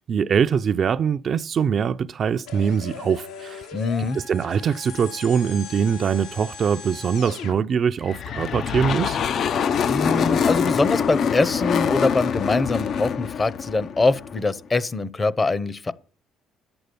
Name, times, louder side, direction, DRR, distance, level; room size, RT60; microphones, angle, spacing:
voice 1, 0.0-3.6 4.0-9.2, right 7 dB, 45° right, 0.5 m, -23 dB
sound 1, 2.5-7.6, left 6 dB, 90° left, 2.4 m, -39 dB
voice 2, 3.7-4.2 9.9-15.9, left 3 dB, 25° left, 0.8 m, -23 dB
sound 2, 8.1-14.5, left 7 dB, 55° left, 0.6 m, -24 dB
11.0 x 7.9 x 6.9 m
cardioid pair, 110°, 0 cm